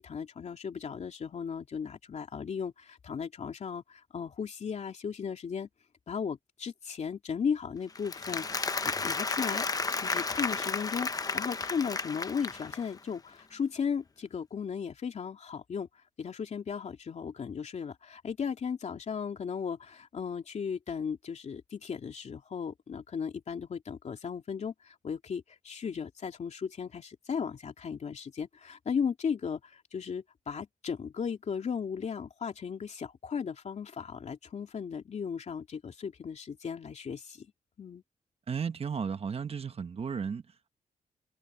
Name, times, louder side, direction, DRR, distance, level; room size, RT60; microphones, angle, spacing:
voice 1, 0.0-5.7 6.1-9.6 10.0-15.9 16.2-37.5 37.8-38.0, left 6 dB, 55° left, 3.1 m, -36 dB
Applause, 7.9-13.0, left 4 dB, 25° left, 0.9 m, -33 dB
voice 2, 38.5-40.4, right 6 dB, 45° right, 1.2 m, -34 dB
cardioid pair, 110°, 14 cm